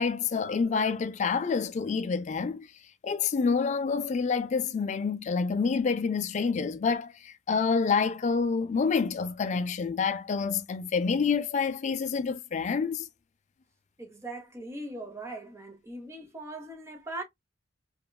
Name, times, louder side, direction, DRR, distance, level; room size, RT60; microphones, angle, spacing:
voice 1, 0.0-2.7 3.0-13.1, left 5 dB, 40° left, 0.3 m, -28 dB
voice 2, 14.0-17.2, right 2 dB, 15° right, 0.7 m, -40 dB
3.0 x 2.2 x 2.2 m
head